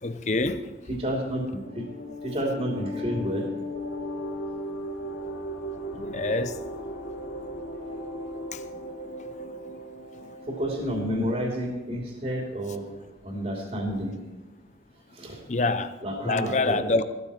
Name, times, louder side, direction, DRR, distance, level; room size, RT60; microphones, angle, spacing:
voice 1, 0.0-0.8 5.9-6.6 8.5-8.6 15.5-16.0 16.2-17.0, left 3 dB, 40° left, 0.7 m, -26 dB
voice 2, 0.9-1.9 2.2-3.5 10.5-12.8 13.2-14.1 15.1-15.4 16.0-16.8, equal, 40° right, 2.8 m, -30 dB
sound 1, 1.3-11.5, equal, 85° left, 1.8 m, -37 dB
15.0 x 13.5 x 4.3 m
head